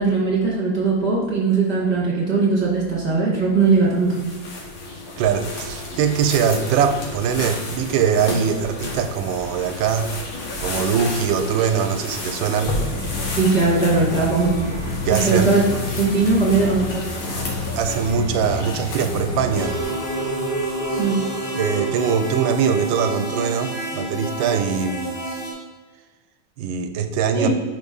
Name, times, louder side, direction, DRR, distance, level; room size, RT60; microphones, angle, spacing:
voice 1, 0.0-4.2 13.4-14.5 15.1-15.6 16.0-17.0 21.0-21.2 27.3-27.5, right 4 dB, 5° right, -6 dB, 1.5 m, -19 dB
sound 1, 3.6-21.4, left 2 dB, 70° left, 1.8 m, -32 dB
voice 2, 5.2-10.1 10.6-12.8 15.0-15.5 17.8-19.7 21.5-25.1 26.6-27.5, right 7 dB, 85° right, 8 dB, 1.3 m, -22 dB
sound 2, 12.9-19.8, left 3 dB, 55° left, 1.4 m, -31 dB
sound 3, 19.5-25.5, right 1 dB, 90° left, 2.2 m, -28 dB
5.1 x 4.0 x 5.2 m, 1.3 s
omnidirectional pair, 2.1 m